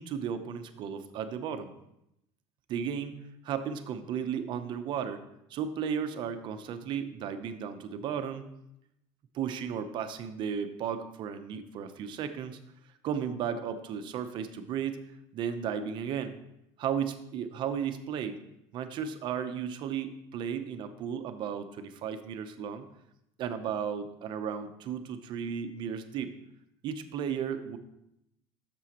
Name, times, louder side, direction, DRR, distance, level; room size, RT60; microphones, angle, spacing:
voice 1, 0.0-1.7 2.7-5.2 5.5-8.5 9.3-12.6 13.0-15.0 15.3-16.3 16.8-18.4 18.7-22.9 23.4-26.3 26.8-27.8, right 7 dB, 40° right, 9 dB, 0.7 m, -34 dB
11.0 x 6.9 x 2.9 m, 0.81 s
cardioid pair, 155°, 12 cm